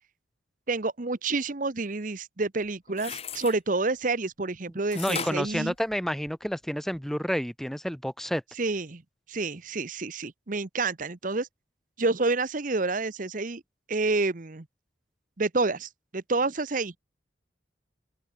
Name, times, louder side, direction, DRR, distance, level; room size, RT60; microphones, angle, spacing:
voice 1, 0.7-5.7 8.6-9.0 9.3-11.5 12.0-13.6 13.9-14.7 15.4-16.9, right 3 dB, 45° right, 0.9 m, -28 dB
sound 1, 2.6-3.6 4.9-6.5 6.9-7.0, left 7 dB, 30° left, 4.2 m, -38 dB
voice 2, 4.9-8.4, equal, ahead, 1.0 m, -29 dB
open air
head